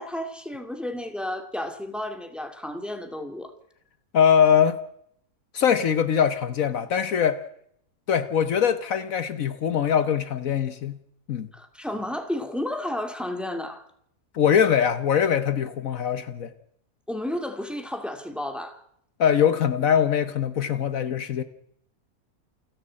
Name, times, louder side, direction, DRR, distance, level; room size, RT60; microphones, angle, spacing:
voice 1, 0.0-3.5 11.5-13.9 17.1-18.8, left 1 dB, ahead, 2.2 m, -32 dB
voice 2, 4.1-4.8 5.5-7.4 8.1-11.0 11.3-11.5 14.3-16.5 19.2-21.4, left 8 dB, 65° left, 1.4 m, -22 dB
28.0 x 10.5 x 8.6 m
omnidirectional pair, 1.6 m